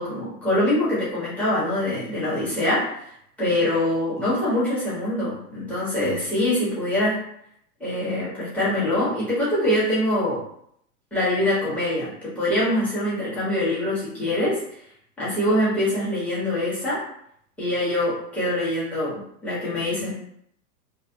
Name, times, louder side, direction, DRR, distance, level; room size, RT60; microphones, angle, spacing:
voice 1, 0.0-3.1 3.4-7.2 7.8-10.4 11.1-14.6 15.2-17.0 17.6-20.1, left 1 dB, 5° left, -9 dB, 1.3 m, -24 dB
3.0 x 2.7 x 2.8 m, 0.70 s
hypercardioid pair, 115°, 49 cm